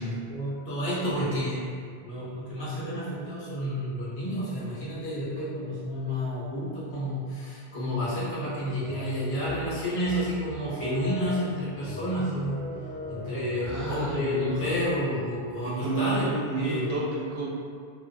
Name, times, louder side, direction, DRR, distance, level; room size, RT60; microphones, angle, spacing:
voice 1, 0.0-12.6 13.1-16.3 16.6-16.9, equal, 80° left, -9 dB, 1.0 m, -30 dB
sound 1, 8.8-15.3, left 1 dB, 25° right, 0.5 m, -40 dB
voice 2, 13.6-14.6 15.8-17.5, right 2 dB, 70° right, -5 dB, 0.8 m, -31 dB
2.4 x 2.2 x 2.6 m, 2.1 s
omnidirectional pair, 1.0 m